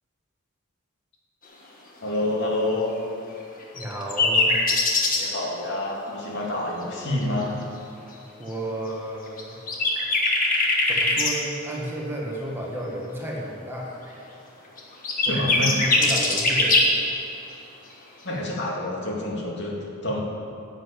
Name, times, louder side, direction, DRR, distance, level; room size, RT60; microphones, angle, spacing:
voice 1, 2.0-2.9 5.2-7.6 15.2-15.9 18.2-20.2, left 1 dB, 55° left, -2 dB, 2.3 m, -28 dB
sound 1, 3.8-5.2 9.4-9.5 9.7-11.3 14.8-16.9, left 2 dB, 40° left, 1.6 m, -21 dB
voice 2, 3.8-4.5 8.4-9.6 10.9-14.3 15.3-16.8, right 1 dB, 10° right, -3 dB, 1.6 m, -32 dB
10.5 x 8.1 x 8.3 m, 2.7 s
head